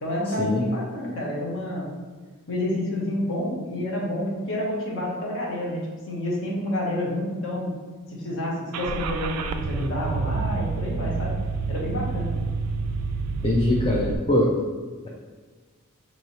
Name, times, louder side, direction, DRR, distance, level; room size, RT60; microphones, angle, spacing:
voice 1, 0.0-1.9 2.5-7.7 8.1-11.3 11.7-12.4, left 1 dB, 60° left, -3 dB, 1.0 m, -29 dB
Car / Engine starting, 8.7-14.2, right 4 dB, 85° right, 0.3 m, -28 dB
voice 2, 13.4-14.5, left 1 dB, 25° left, -2 dB, 0.4 m, -22 dB
3.1 x 2.8 x 4.1 m, 1.4 s
head